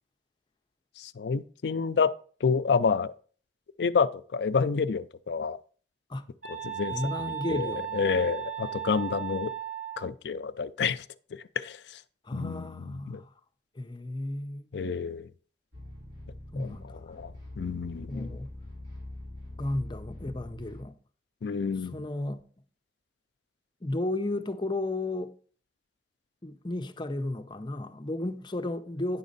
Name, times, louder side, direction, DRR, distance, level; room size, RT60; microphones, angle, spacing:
voice 1, 1.0-2.1 2.4-3.1 3.8-5.6 6.5-9.5 10.0-11.0 11.3-11.8 12.3-13.2 14.7-15.3 16.5-16.8 17.1-18.3 21.4-22.0, left 5 dB, 70° left, 0.4 m, -29 dB
sound 1, 6.4-10.1, right 10 dB, 55° right, 3.5 m, -36 dB
voice 2, 6.9-8.0 12.2-13.3 13.8-14.6 16.5-17.1 18.1-18.5 19.6-21.0 21.8-22.4 23.8-25.3 26.4-29.2, left 1 dB, 25° left, 0.6 m, -33 dB
sound 2, 15.7-20.9, left 1 dB, 70° right, 3.9 m, -43 dB
9.5 x 6.2 x 4.0 m
head